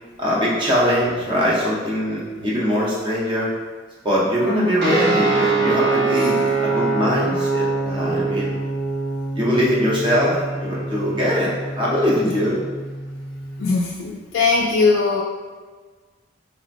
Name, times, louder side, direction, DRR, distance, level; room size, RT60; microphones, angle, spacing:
voice 1, 0.2-3.5 4.0-6.4 6.6-8.5 9.3-11.5 11.7-12.6, equal, 25° right, -6 dB, 0.7 m, -21 dB
voice 2, 4.4-5.0 12.3-12.4 13.6-15.2, left 4 dB, 75° left, -4 dB, 0.3 m, -20 dB
sound 1, 4.8-13.7, right 3 dB, 60° right, 0.7 m, -24 dB
3.2 x 2.9 x 2.5 m, 1.4 s
head